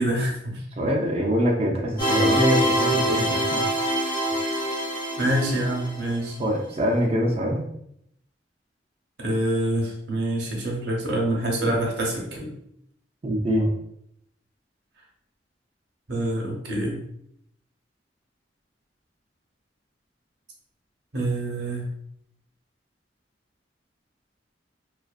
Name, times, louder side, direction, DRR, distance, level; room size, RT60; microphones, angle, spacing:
voice 1, 0.0-0.9 5.2-6.4 9.2-12.6 16.1-17.0 21.1-21.9, right 1 dB, 70° right, -1 dB, 0.7 m, -26 dB
voice 2, 0.8-3.7 6.4-7.6 13.2-13.7, equal, 35° right, -1 dB, 0.4 m, -24 dB
sound 1, 2.0-6.1, equal, 25° left, 0.7 m, -24 dB
2.4 x 2.4 x 2.2 m, 0.72 s
head